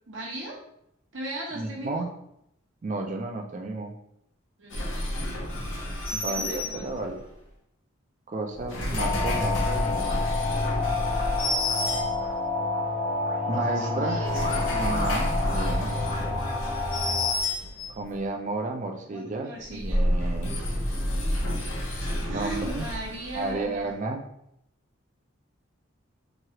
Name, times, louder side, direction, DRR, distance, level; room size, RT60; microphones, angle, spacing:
voice 1, 0.1-0.6 1.1-2.1 4.6-4.9 6.1-7.1 13.5-14.7 15.9-16.4 19.1-20.0 22.3-23.9, right 1 dB, 65° right, -2 dB, 0.8 m, -38 dB
voice 2, 1.5-2.1 2.8-3.9 6.1-7.2 8.3-10.3 13.5-14.3 14.7-16.0 17.9-20.6 22.3-22.9 23.3-24.2, right 2 dB, 35° right, 2 dB, 0.3 m, -32 dB
sound 1, 4.7-7.2 8.5-12.5 14.1-18.1 19.6-23.8, left 1 dB, 75° left, 0.7 m, -30 dB
sound 2, 9.0-17.3, left 3 dB, 35° left, 0.4 m, -28 dB
3.0 x 2.3 x 2.8 m, 0.76 s
head